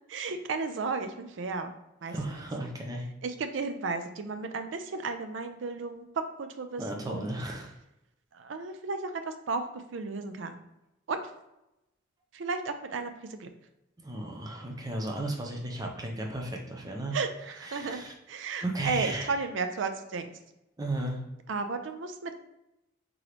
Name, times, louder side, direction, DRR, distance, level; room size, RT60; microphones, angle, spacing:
voice 1, 0.1-1.7 2.0-2.4 3.2-7.3 8.3-10.6 11.1-11.2 12.3-13.5 17.1-18.0 18.3-20.3 21.5-22.4, right 4 dB, 75° right, 8 dB, 0.4 m, -34 dB
voice 2, 2.1-3.1 6.8-7.7 14.0-17.1 17.7-18.1 18.6-19.3 20.8-21.2, right 1 dB, 20° right, 1 dB, 0.6 m, -34 dB
3.8 x 2.9 x 3.3 m, 0.90 s
head